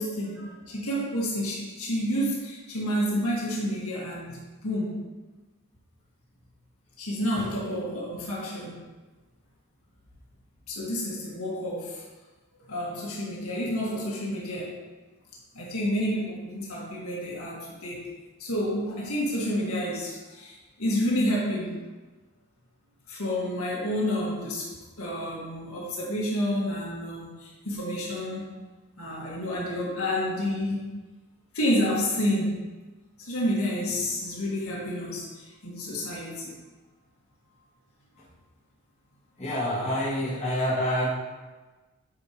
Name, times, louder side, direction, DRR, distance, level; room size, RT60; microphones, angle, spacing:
voice 1, 0.0-5.0 7.0-8.8 10.7-12.0 12.6-14.8 15.5-18.1 18.4-21.7 23.1-24.7 25.0-28.5 29.0-30.9 31.5-32.6 33.2-36.5, equal, 80° left, -5 dB, 1.8 m, -29 dB
voice 2, 39.4-41.1, equal, 30° left, -8 dB, 2.1 m, -27 dB
9.3 x 5.1 x 3.0 m, 1.2 s
head